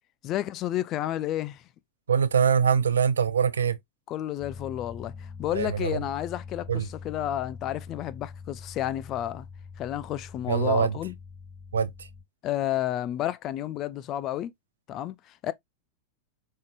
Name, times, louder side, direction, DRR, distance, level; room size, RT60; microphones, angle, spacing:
voice 1, 0.2-1.6 4.1-9.5 9.8-11.1 12.4-14.5 14.9-15.5, left 12 dB, 35° left, 0.4 m, -31 dB
voice 2, 2.1-3.8 5.6-6.0 6.7-6.9 10.5-11.0 11.7-11.9, right 7 dB, 70° right, 0.5 m, -23 dB
sound 1, 4.4-12.2, left 5 dB, ahead, 1.1 m, -43 dB
5.4 x 3.7 x 2.4 m
figure-of-eight pair, 90°, 0 cm